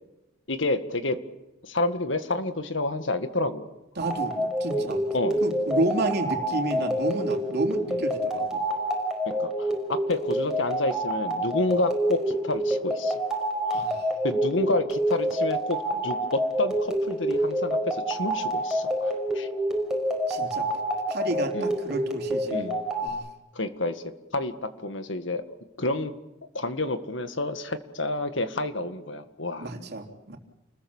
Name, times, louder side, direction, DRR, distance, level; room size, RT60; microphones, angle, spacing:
voice 1, 0.5-1.2 1.6-3.7 4.7-4.8 5.1-5.4 6.7-6.9 7.9-8.0 9.4-13.2 13.7-13.8 14.2-19.5 21.5-21.7 22.5-22.8 23.6-24.0 24.3-25.4 25.8-26.1 26.5-29.7, left 2 dB, 65° left, 9 dB, 1.9 m, -29 dB
sound 1, 4.0-23.1, right 1 dB, 5° right, 5.2 m, -27 dB
voice 2, 4.0-5.0 5.4-8.6 13.7-14.1 20.3-20.7 21.1-22.7 23.0-23.2 29.6-30.4, right 1 dB, 55° right, 4 dB, 3.5 m, -31 dB
29.5 x 20.5 x 7.3 m, 0.99 s
head